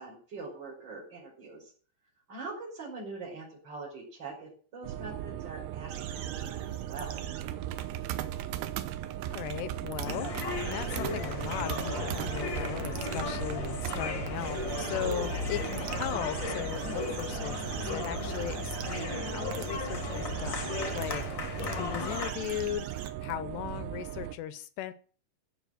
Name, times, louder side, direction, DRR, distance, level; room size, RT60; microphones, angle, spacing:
voice 1, 0.0-1.7 2.3-7.2, right 3 dB, 25° right, -4 dB, 5.3 m, -43 dB
sound 1, 4.8-24.4, right 12 dB, 90° right, 3.3 m, -37 dB
sound 2, 5.9-7.4 7.8-7.9 8.4-8.5 9.9-10.1 10.5-12.4 12.8-13.3 13.6-13.9 14.3-21.3 21.6-23.1, right 8 dB, 70° right, 1.7 m, -43 dB
voice 2, 9.3-10.4 10.6-20.7 20.9-21.2 21.5-24.9, left 13 dB, 80° left, 14 dB, 2.7 m, -38 dB
sound 3, 10.0-22.3, left 4 dB, 35° left, 2.0 m, -36 dB
15.5 x 7.7 x 7.7 m, 0.44 s
omnidirectional pair, 5.1 m